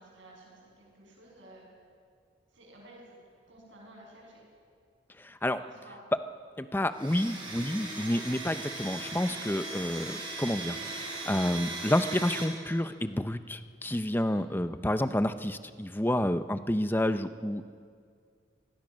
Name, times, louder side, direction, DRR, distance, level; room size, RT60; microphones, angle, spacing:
voice 1, 0.0-1.7 2.5-3.2 3.5-4.5 5.6-6.0 14.2-14.5, right 1 dB, 80° right, -2 dB, 7.6 m, -53 dB
voice 2, 5.2-5.6 6.6-17.6, left 1 dB, 10° left, 10 dB, 0.6 m, -29 dB
Domestic sounds home sounds, 6.9-12.4, right 2 dB, 25° right, 4.7 m, -38 dB
24.5 x 19.5 x 6.4 m, 2.2 s
head